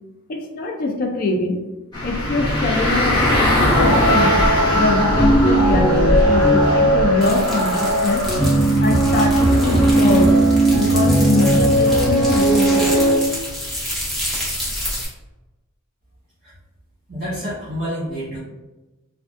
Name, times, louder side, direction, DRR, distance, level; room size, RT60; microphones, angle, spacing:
voice 1, 0.3-1.6 2.0-4.4 4.7-8.3 8.8-10.3 10.8-13.1, left 3 dB, 40° left, 3 dB, 0.3 m, -23 dB
sound 1, 1.9-14.9, left 1 dB, 20° left, 1.0 m, -23 dB
sound 2, 3.7-13.2, right 1 dB, 80° left, 0.9 m, -17 dB
sound 3, 7.2-15.1, equal, ahead, 0.7 m, -29 dB
voice 2, 17.1-18.4, equal, 40° right, -11 dB, 1.2 m, -28 dB
3.4 x 2.3 x 2.4 m, 1.1 s
head